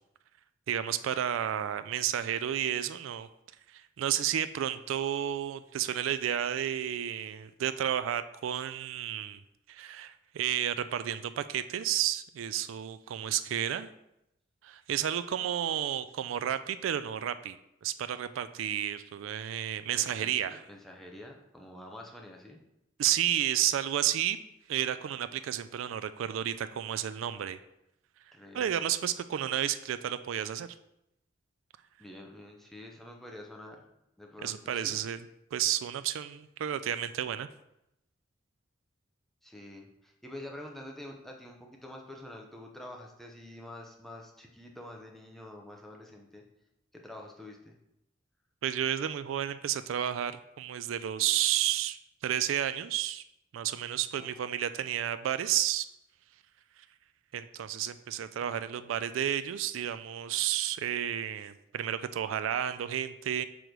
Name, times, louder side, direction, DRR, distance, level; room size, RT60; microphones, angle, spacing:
voice 1, 0.7-3.3 3.7-9.4 9.7-13.9 14.6-17.6 17.8-20.6 23.0-24.4 24.7-27.6 28.5-30.7 34.4-35.2 35.5-37.5 48.6-52.0 52.2-53.2 53.5-55.9 57.3-63.4, right 10 dB, 80° right, 13 dB, 0.3 m, -31 dB
voice 2, 19.9-22.6 28.3-28.7 32.0-33.8 34.2-35.0 39.4-46.4 46.9-47.8 54.2-54.5, left 1 dB, ahead, 0 dB, 0.7 m, -47 dB
6.1 x 3.1 x 5.1 m, 0.84 s
head